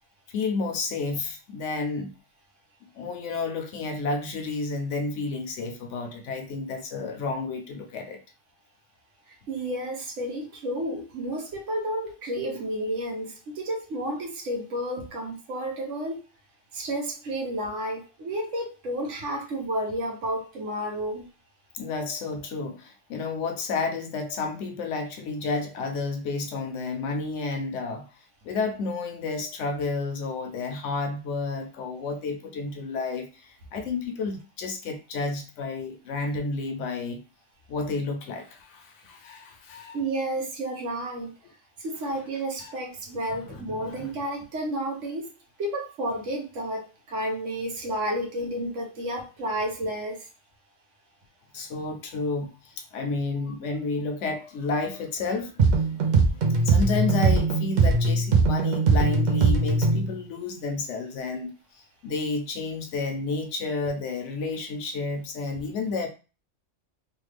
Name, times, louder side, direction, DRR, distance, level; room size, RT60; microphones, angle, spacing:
voice 1, 0.3-2.1 2.9-8.2 21.7-28.1 28.4-37.2 37.7-40.0 42.6-42.7 43.5-44.1 51.5-61.5 62.0-66.1, left 3 dB, 75° left, 1.0 m, -31 dB
voice 2, 9.5-16.2 16.7-21.3 39.9-41.3 41.8-45.3 45.6-50.3, right 1 dB, 90° right, 1.2 m, -31 dB
sound 1, 55.6-60.1, right 3 dB, 50° right, 0.6 m, -21 dB
3.2 x 2.4 x 3.3 m
omnidirectional pair, 1.2 m